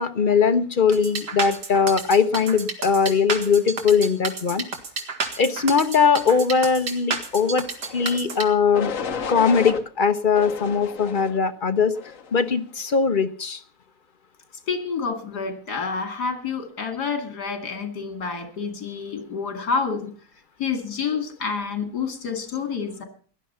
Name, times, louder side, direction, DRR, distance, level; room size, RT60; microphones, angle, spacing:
voice 1, 0.0-4.6 5.4-7.6 7.9-8.9 9.3-11.9 12.3-13.6, left 5 dB, 40° left, 9 dB, 0.8 m, -20 dB
sound 1, 0.9-8.4, right 4 dB, 85° right, 2.4 m, -30 dB
sound 2, 7.8-8.2 8.7-9.8 10.3-11.4 11.9-12.4, left 6 dB, 55° left, 1.5 m, -32 dB
voice 2, 14.7-20.1 20.6-23.0, left 5 dB, 80° left, 7 dB, 2.8 m, -28 dB
17.0 x 11.5 x 5.6 m, 0.42 s
omnidirectional pair, 1.7 m